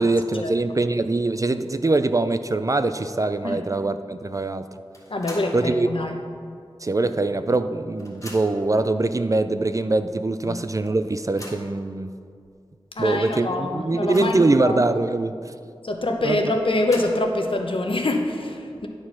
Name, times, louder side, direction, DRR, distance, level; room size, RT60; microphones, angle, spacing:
voice 1, 0.0-4.7 5.5-6.1 6.8-12.1 13.0-15.5 16.2-16.4, right 2 dB, 35° right, 11 dB, 0.3 m, -23 dB
sound 1, 4.9-5.7 6.1-6.2 7.2-7.3 7.6-8.7 9.5-9.6 10.0-10.1 11.0-11.7 12.4-12.5 12.9-13.0 13.5-14.6 16.5-17.4, left 1 dB, 35° left, 1.7 m, -42 dB
voice 2, 5.1-6.1 10.5-10.6 13.0-14.8 15.8-18.9, left 2 dB, 60° left, 3 dB, 0.8 m, -25 dB
9.4 x 4.4 x 5.8 m, 2.3 s
wide cardioid pair, 50°, 10 cm